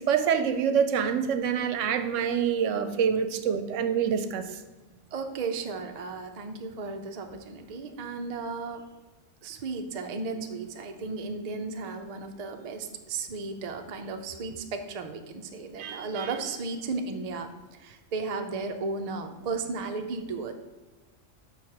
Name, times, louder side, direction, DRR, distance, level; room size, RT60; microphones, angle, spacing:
voice 1, 0.0-4.4, right 7 dB, 75° right, 9 dB, 0.9 m, -26 dB
voice 2, 5.1-8.8 9.4-20.5, right 4 dB, 50° right, 5 dB, 0.5 m, -34 dB
6.4 x 3.4 x 5.7 m, 1.2 s
omnidirectional pair, 1.3 m